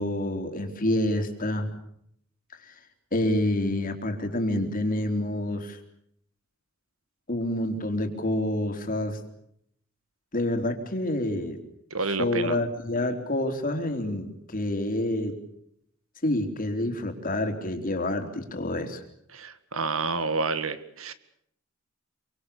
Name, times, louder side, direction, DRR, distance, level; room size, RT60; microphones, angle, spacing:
voice 1, 0.0-1.7 3.1-5.8 7.3-9.2 10.3-11.6 12.2-15.4 16.2-19.0, left 1 dB, 45° left, 6 dB, 3.7 m, -28 dB
voice 2, 11.9-12.6 19.3-21.1, right 3 dB, 80° right, 12 dB, 2.0 m, -29 dB
27.5 x 24.5 x 6.9 m, 0.72 s
head